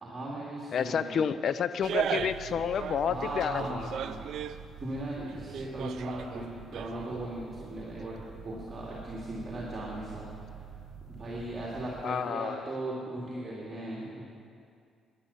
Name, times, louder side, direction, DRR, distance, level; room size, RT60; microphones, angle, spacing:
voice 1, 0.0-1.2 3.0-4.4 4.8-10.6 11.1-14.3, right 1 dB, 35° right, -5 dB, 2.3 m, -38 dB
voice 2, 0.7-3.9 12.0-12.6, left 7 dB, 60° left, 14 dB, 0.5 m, -30 dB
sound 1, 1.8-2.5 2.8-4.6 5.1-7.2 7.5-7.6, right 8 dB, 70° right, 0.5 m, -36 dB
sound 2, 2.2-12.0, right 7 dB, 55° right, 1.5 m, -47 dB
11.5 x 9.8 x 6.9 m, 2.3 s
cardioid pair, 90°, 0 cm